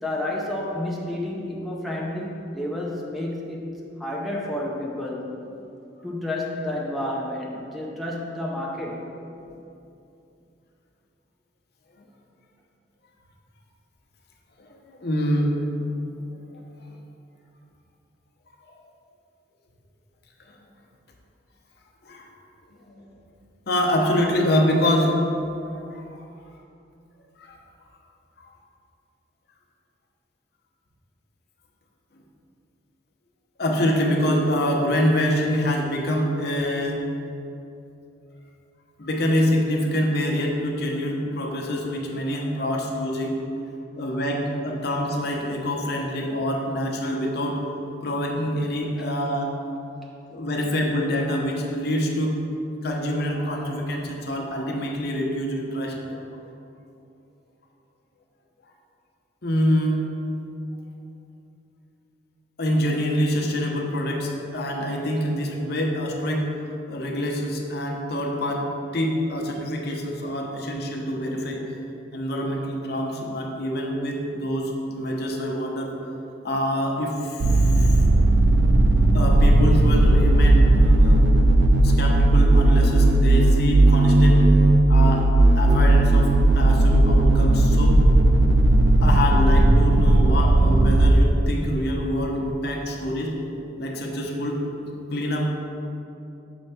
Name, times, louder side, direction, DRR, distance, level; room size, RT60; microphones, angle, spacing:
voice 1, 0.0-3.7 4.0-5.5 6.0-9.1 50.0-50.1, left 1 dB, ahead, -3 dB, 0.5 m, -30 dB
voice 2, 14.6-15.9 20.5-20.6 22.0-22.3 22.9-23.0 23.7-25.1 25.7-26.1 27.4-27.6 28.4-28.5 33.6-37.0 39.0-43.4 43.9-47.6 48.0-49.6 50.3-52.3 52.8-56.2 59.4-60.0 62.6-66.5 66.9-71.8 72.1-75.9 76.4-78.0 79.1-81.2 81.8-84.5 84.9-85.3 85.6-88.0 89.0-93.3 93.8-95.5, equal, 60° left, 0 dB, 0.8 m, -26 dB
sound 1, 77.4-91.1, right 2 dB, 80° right, 0.5 m, -16 dB
6.3 x 3.3 x 5.7 m, 2.7 s
head